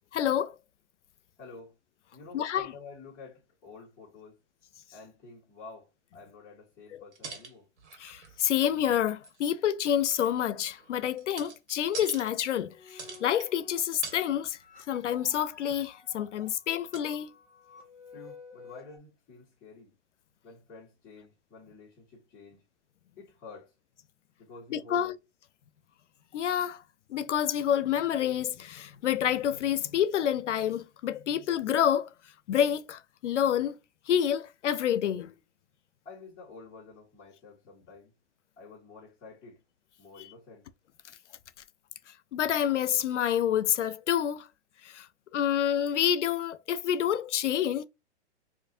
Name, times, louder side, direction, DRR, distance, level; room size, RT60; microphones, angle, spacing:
voice 1, 0.1-0.5 2.3-2.7 8.0-14.6 14.9-17.3 24.7-25.2 26.3-26.8 27.1-32.1 32.5-33.8 34.1-35.3 42.3-44.4 44.9-45.1 45.3-47.8, left 10 dB, 85° left, 0.6 m, -28 dB
voice 2, 1.4-1.8 2.1-4.4 4.9-7.7 18.1-19.9 20.4-22.6 23.2-23.7 24.4-25.1 36.0-38.1 38.6-39.6 40.0-40.7, left 4 dB, 15° left, 1.9 m, -50 dB
sound 1, 7.1-8.4 8.7-9.4 9.9-12.3 12.9-13.5 13.8-14.3 14.5-14.8 15.1-15.9 16.7-16.8 16.9-17.0, right 5 dB, 75° right, 1.9 m, -44 dB
sound 2, 12.4-19.0, left 4 dB, ahead, 1.7 m, -52 dB
4.5 x 2.7 x 2.7 m
hypercardioid pair, 150°, 35 cm